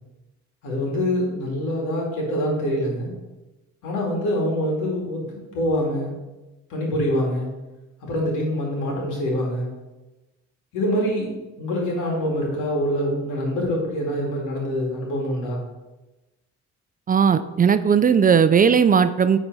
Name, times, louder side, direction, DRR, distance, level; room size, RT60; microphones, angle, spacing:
voice 1, 0.6-3.1 3.8-6.1 6.7-7.5 8.0-9.7 10.7-15.6, equal, 90° left, -1 dB, 2.3 m, -25 dB
voice 2, 17.1-19.4, right 7 dB, 30° right, 12 dB, 0.4 m, -17 dB
9.3 x 4.1 x 4.6 m, 1.1 s
cardioid pair, 90°, 30 cm